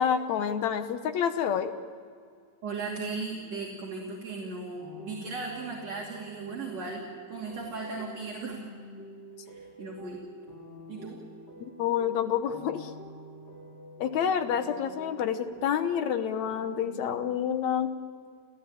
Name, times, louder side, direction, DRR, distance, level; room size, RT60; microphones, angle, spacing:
voice 1, 0.0-1.7 11.8-12.9 14.0-17.9, left 8 dB, 75° left, 9 dB, 2.3 m, -28 dB
voice 2, 2.6-7.0 7.3-8.6 9.5-10.2 10.9-11.2, right 4 dB, 60° right, -3 dB, 3.8 m, -37 dB
sound 1, 4.8-17.4, right 1 dB, 15° left, 2.7 m, -48 dB
29.5 x 16.0 x 8.8 m, 2.1 s
omnidirectional pair, 3.3 m